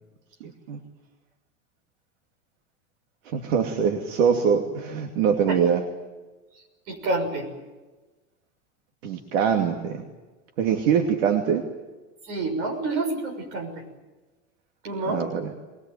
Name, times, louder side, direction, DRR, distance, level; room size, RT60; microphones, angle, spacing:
voice 1, 0.4-0.8 3.2-5.8 9.0-10.0 10.6-11.6 15.1-15.5, right 7 dB, 65° right, 3 dB, 2.7 m, -23 dB
voice 2, 6.9-7.5 12.3-13.8 14.8-15.2, right 2 dB, 45° right, 2 dB, 6.4 m, -28 dB
22.0 x 21.5 x 9.4 m, 1.2 s
supercardioid pair, 175°, 40 cm